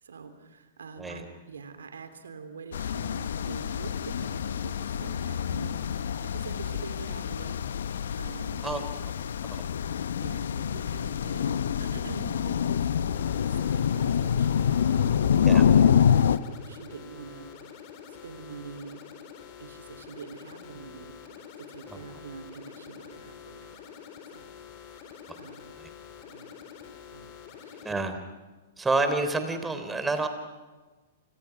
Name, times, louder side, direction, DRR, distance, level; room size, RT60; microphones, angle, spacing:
voice 1, 0.0-7.6 8.2-8.9 10.2-17.5 18.1-19.0 19.6-23.8 24.3-24.5 24.9-25.8 26.3-26.6 27.0-27.3 27.6-27.8, right 5 dB, 75° right, 9 dB, 3.2 m, -45 dB
sound 1, 2.7-16.4, left 8 dB, 70° left, 1.0 m, -26 dB
sound 2, 13.1-28.0, left 8 dB, 40° left, 4.6 m, -47 dB
voice 2, 27.8-28.2 28.8-30.3, right 3 dB, 10° right, 8 dB, 3.6 m, -28 dB
29.5 x 29.0 x 6.0 m, 1.3 s
figure-of-eight pair, 110°, 0 cm